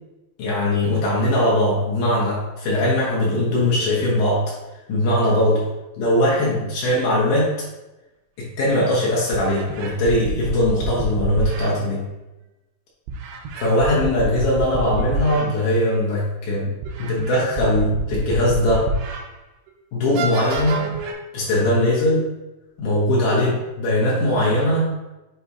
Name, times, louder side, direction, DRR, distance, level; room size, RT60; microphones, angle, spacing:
voice 1, 0.4-4.5 4.9-5.7 6.0-7.5 8.4-12.1 13.6-18.9 19.9-20.9 21.3-22.3 22.8-25.0, left 1 dB, 80° left, -6 dB, 1.7 m, -20 dB
sound 1, 8.6-8.7 9.3-11.7 13.1-15.5 15.9-16.0 16.8-19.2 19.7-19.8 20.1-21.1, right 2 dB, 80° right, 2.7 m, -27 dB
7.5 x 2.8 x 4.8 m, 1.0 s
omnidirectional pair, 5.7 m